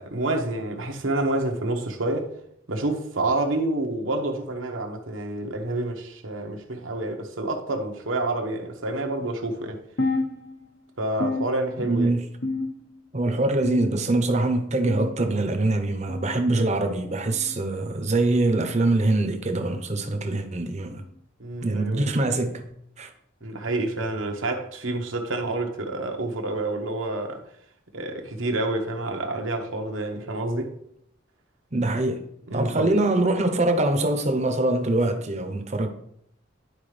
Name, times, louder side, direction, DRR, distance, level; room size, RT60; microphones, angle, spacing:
voice 1, 0.0-2.3 2.7-9.8 11.0-12.1 21.4-22.1 23.4-27.4 27.9-30.7 32.5-32.9, right 2 dB, 80° right, 1.2 m, -28 dB
sound 1, 10.0-10.8 11.2-12.0 12.4-13.0 13.6-14.3 14.9-15.2 16.1-16.3 17.3-17.5 18.5-18.7 19.7-19.9 21.0-21.2 22.2-22.4 23.4-23.5 24.6-24.7, left 3 dB, 65° left, 1.2 m, -31 dB
voice 2, 11.8-12.3 13.1-21.0 21.6-22.6 23.0-23.1 31.7-32.2 32.5-35.9, right 2 dB, 35° right, 0.9 m, -24 dB
11.0 x 4.8 x 3.3 m
head